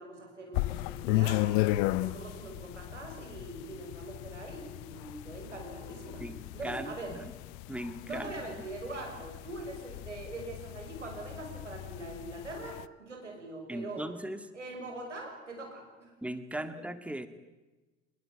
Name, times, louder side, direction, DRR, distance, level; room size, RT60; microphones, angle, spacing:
voice 1, 0.0-1.5 1.8-6.2 6.5-7.1 8.0-14.0 14.5-16.1 16.5-16.7, right 2 dB, 90° right, 2 dB, 6.3 m, -42 dB
sound 1, 0.5-12.9, left 18 dB, 55° left, 0.8 m, -35 dB
voice 2, 6.2-7.3 7.7-8.3 13.7-14.5 16.2-17.3, right 1 dB, 5° right, 10 dB, 2.1 m, -38 dB
25.0 x 21.5 x 9.4 m, 1.2 s
figure-of-eight pair, 65°, 35 cm